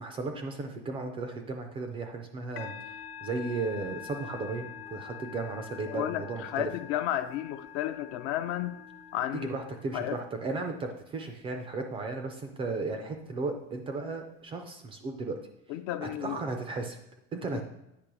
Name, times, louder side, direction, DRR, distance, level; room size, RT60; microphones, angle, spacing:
voice 1, 0.0-2.9 3.2-6.7 9.3-15.4 16.0-17.0 17.3-17.6, right 3 dB, 20° right, 5 dB, 0.3 m, -35 dB
Musical instrument, 2.6-10.2, left 9 dB, 70° left, 1.1 m, -45 dB
voice 2, 5.9-8.8 9.1-9.6 9.9-10.2 15.7-16.4 17.5-17.6, left 12 dB, 50° left, 11 dB, 0.4 m, -33 dB
8.4 x 2.9 x 6.0 m, 0.87 s
cardioid pair, 165°, 32 cm